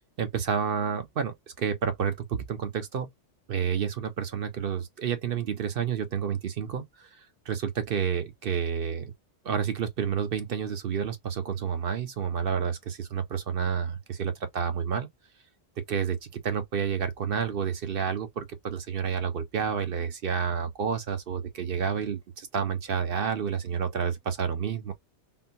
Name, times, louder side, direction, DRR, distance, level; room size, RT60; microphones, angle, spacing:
voice 1, 0.2-3.1 3.5-7.1 7.5-9.1 9.4-15.1 15.9-24.9, right 7 dB, 55° right, 0.9 m, -30 dB
3.7 x 2.3 x 2.7 m
omnidirectional pair, 1.2 m